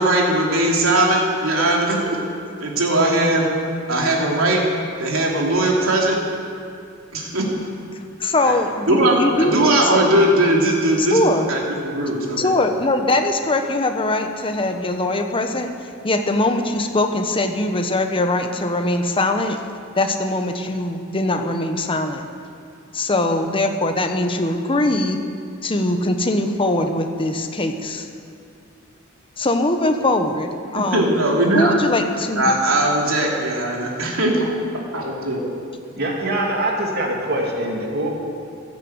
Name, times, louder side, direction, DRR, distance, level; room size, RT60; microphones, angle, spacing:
voice 1, 0.0-2.2 2.6-3.4 3.9-4.6 5.0-6.2 7.1-7.4 8.4-8.6 8.9-12.5 30.9-31.7 32.4-34.4 34.9-35.4, right 1 dB, 90° right, -2 dB, 3.0 m, -19 dB
voice 2, 8.2-9.5 11.0-11.5 12.4-15.7 16.0-19.6 20.0-22.2 22.9-25.2 25.6-28.1 29.4-31.1 31.5-32.5, left 2 dB, 25° left, 5 dB, 1.1 m, -21 dB
voice 3, 36.0-38.1, right 1 dB, 50° right, -1 dB, 2.6 m, -23 dB
15.5 x 10.5 x 8.1 m, 2.5 s
head